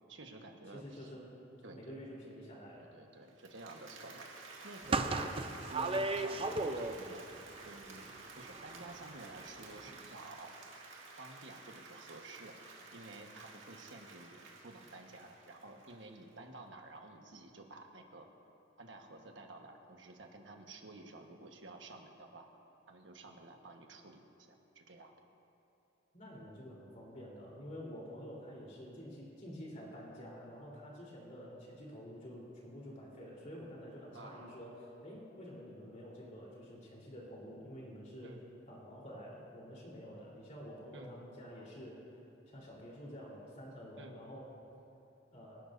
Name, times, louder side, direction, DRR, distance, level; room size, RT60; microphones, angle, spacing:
voice 1, 0.1-1.1 1.6-2.0 2.8-4.3 4.6-7.3 7.6-8.1 8.3-10.5 11.2-18.3 18.8-22.5 22.9-24.2 24.5-25.1 34.1-34.6 38.2-38.4 40.9-41.2 44.0-44.2, right 2 dB, 70° right, 3 dB, 1.4 m, -52 dB
voice 2, 0.7-1.3 1.7-2.9 26.1-38.3 38.7-42.0 42.5-44.7 45.3-45.6, equal, 40° left, -5 dB, 3.7 m, -49 dB
Applause, 3.3-16.3, right 3 dB, 90° right, 1.9 m, -53 dB
sound 1, 4.8-7.2 7.5-9.1 9.4-9.5 9.8-9.9, right 3 dB, 30° right, 0.5 m, -35 dB
28.0 x 12.0 x 2.7 m, 2.8 s
head